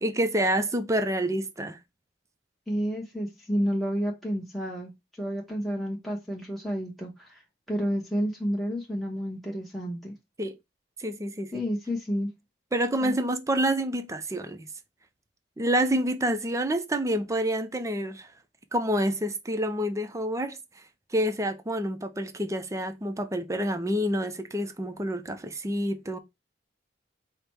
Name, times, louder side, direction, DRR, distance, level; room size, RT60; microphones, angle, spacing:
voice 1, 0.0-1.8 10.4-10.6 11.0-11.5 12.7-14.7 15.6-18.3 18.7-20.6 21.1-26.2, right 1 dB, 15° right, 0.5 m, -28 dB
voice 2, 2.7-4.9 5.2-7.4 7.7-10.1 11.5-12.3 13.0-13.2, equal, ahead, 0.9 m, -30 dB
4.9 x 2.1 x 4.4 m
head